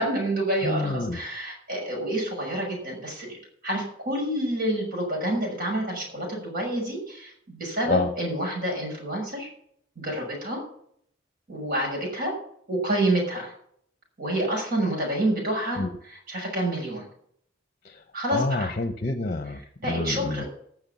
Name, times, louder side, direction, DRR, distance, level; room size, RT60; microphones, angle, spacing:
voice 1, 0.0-3.4 3.6-9.5 10.0-10.6 11.5-12.3 12.7-13.5 14.2-15.8 16.1-17.0 18.1-18.7 19.8-20.5, right 1 dB, 50° right, -1 dB, 6.3 m, -28 dB
voice 2, 0.6-1.2 7.9-8.1 15.8-15.9 17.8-18.0 18.3-20.5, left 2 dB, 40° left, 8 dB, 0.9 m, -28 dB
15.5 x 6.3 x 7.0 m, 0.65 s
head